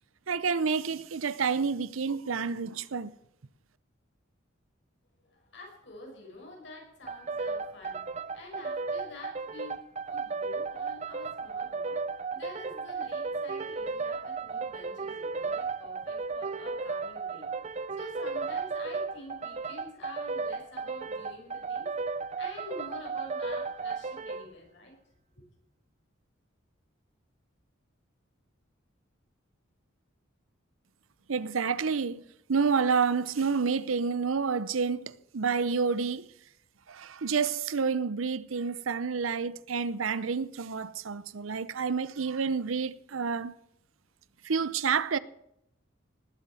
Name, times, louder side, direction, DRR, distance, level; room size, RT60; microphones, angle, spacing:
voice 1, 0.3-3.1 31.3-32.2 32.5-36.3 36.9-43.5 44.4-45.2, right 5 dB, 90° right, 0.7 m, -29 dB
voice 2, 5.2-9.7 10.0-17.5 17.9-21.9 22.4-25.0 25.4-25.5, left 2 dB, 60° left, 5.9 m, -48 dB
sound 1, 7.1-24.5, right 4 dB, 35° right, 0.5 m, -34 dB
19.5 x 8.3 x 7.8 m
head